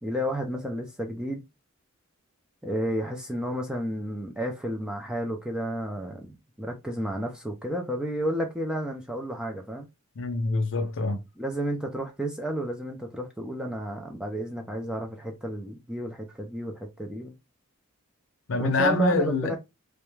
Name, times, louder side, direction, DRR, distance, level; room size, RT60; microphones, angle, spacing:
voice 1, 0.0-1.4 2.6-9.9 11.4-17.3 18.6-19.6, equal, 5° right, 0.4 m, -31 dB
voice 2, 10.2-11.2 18.5-19.6, left 2 dB, 60° left, 0.6 m, -25 dB
2.3 x 2.1 x 3.1 m
head